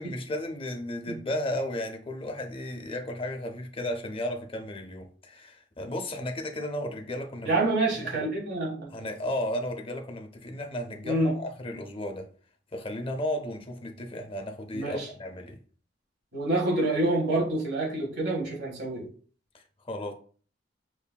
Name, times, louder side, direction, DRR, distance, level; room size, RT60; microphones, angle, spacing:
voice 1, 0.0-7.5 8.0-8.3 8.9-12.3 12.7-15.6 19.5-20.1, left 1 dB, 30° left, 0.5 m, -34 dB
voice 2, 7.4-8.9 11.0-11.3 14.7-15.1 16.3-19.1, right 2 dB, 60° right, 1.6 m, -27 dB
5.3 x 2.6 x 2.2 m
head